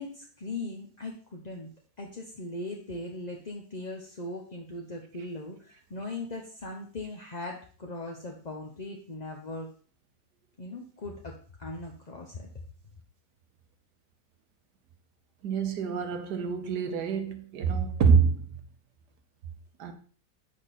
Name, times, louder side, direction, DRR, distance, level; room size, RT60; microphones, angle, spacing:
voice 1, 0.0-1.7 2.0-9.7 10.6-12.5, left 2 dB, 35° left, 0.7 m, -39 dB
voice 2, 15.4-18.4 19.8-19.9, right 6 dB, 70° right, 1.5 m, -26 dB
8.4 x 5.2 x 4.1 m
omnidirectional pair, 1.8 m